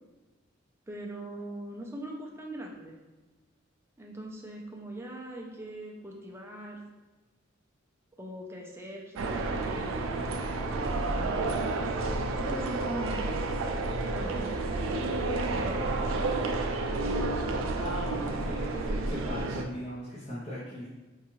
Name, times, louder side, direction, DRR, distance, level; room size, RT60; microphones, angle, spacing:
voice 1, 0.9-2.9 4.0-6.8 8.2-11.6 12.4-13.3 14.1-15.1 15.5-16.6 17.0-17.3, right 1 dB, 10° right, -1 dB, 0.4 m, -41 dB
sound 1, 9.2-19.6, right 2 dB, 85° right, 0.4 m, -30 dB
voice 2, 17.7-20.9, equal, 35° left, -9 dB, 0.7 m, -38 dB
4.5 x 2.4 x 3.0 m, 1.2 s
head